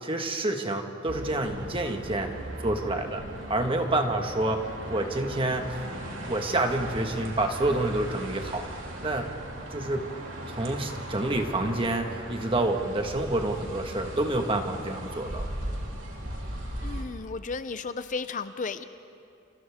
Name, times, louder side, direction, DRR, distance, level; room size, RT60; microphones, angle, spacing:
voice 1, 0.0-2.3 2.6-5.8 6.3-8.7 9.0-9.3 9.7-10.1 10.5-15.5, right 2 dB, 30° right, 4 dB, 1.6 m, -28 dB
sound 1, 1.1-17.0, right 1 dB, 80° right, 3.4 m, -38 dB
voice 2, 16.8-18.8, left 4 dB, 40° left, 11 dB, 0.6 m, -34 dB
29.5 x 28.5 x 3.6 m, 2.6 s
head